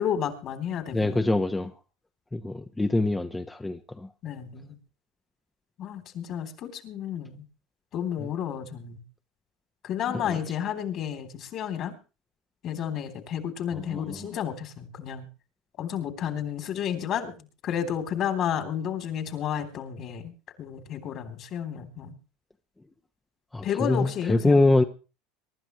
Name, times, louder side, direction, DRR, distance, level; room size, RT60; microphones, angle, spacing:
voice 1, 0.0-1.3 4.2-4.8 5.8-7.4 7.9-9.0 9.8-12.0 12.6-15.3 15.8-20.3 20.6-22.1 23.6-24.6, left 9 dB, 50° left, 3.2 m, -31 dB
voice 2, 0.9-1.7 2.3-4.1 10.3-10.4 13.7-14.3 23.5-24.8, left 2 dB, 10° left, 1.0 m, -24 dB
23.5 x 11.5 x 3.1 m
supercardioid pair, 105°, 0 cm